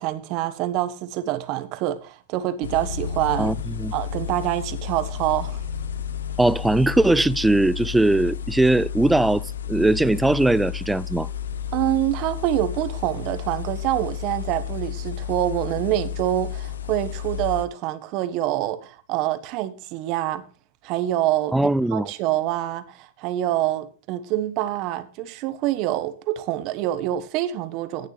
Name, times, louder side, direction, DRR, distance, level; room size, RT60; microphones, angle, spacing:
voice 1, 0.0-3.6 3.9-5.6 11.7-20.4 20.8-21.5 21.9-28.1, right 14 dB, 50° right, 1.2 m, -26 dB
sound 1, 2.6-17.7, left 8 dB, 85° left, 0.9 m, -32 dB
voice 2, 3.4-3.9 6.4-11.3 21.5-22.1, right 2 dB, 5° right, 0.4 m, -20 dB
16.0 x 6.5 x 3.3 m
hypercardioid pair, 115°, 0 cm